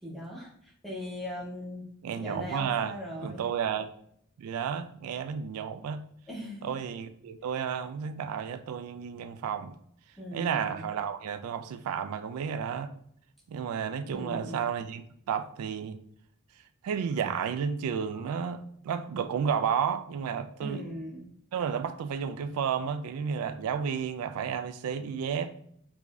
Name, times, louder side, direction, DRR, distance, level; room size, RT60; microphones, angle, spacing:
voice 1, 0.0-1.8 2.1-3.4 6.3-6.7 10.2-10.9 14.1-14.6 20.6-21.3, left 1 dB, ahead, 0.8 m, -39 dB
voice 2, 2.0-3.0 3.2-3.9 4.4-6.0 6.6-9.8 10.3-12.9 13.5-16.0 16.8-20.9 21.5-25.5, right 7 dB, 80° right, 0.3 m, -32 dB
4.7 x 2.6 x 2.3 m
head